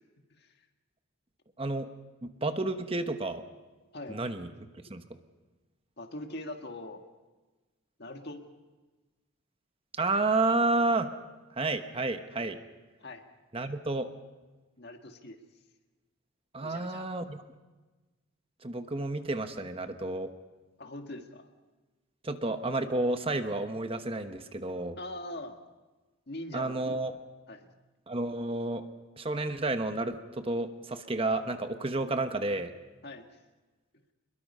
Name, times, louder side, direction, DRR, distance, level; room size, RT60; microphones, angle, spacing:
voice 1, 1.6-1.9 2.4-3.4 4.1-5.0 10.0-11.1 11.6-12.6 13.5-14.1 16.5-17.4 18.6-20.3 22.2-25.0 26.5-27.2 28.1-28.8 29.2-32.7, right 2 dB, 25° right, 8 dB, 1.1 m, -31 dB
voice 2, 6.0-7.0 8.0-8.4 13.0-13.2 14.8-15.4 16.6-17.1 20.8-21.5 25.0-25.6 26.3-26.8 27.5-27.7 33.0-33.3, left 1 dB, 50° left, 5 dB, 1.8 m, -41 dB
25.0 x 22.0 x 5.5 m, 1.2 s
head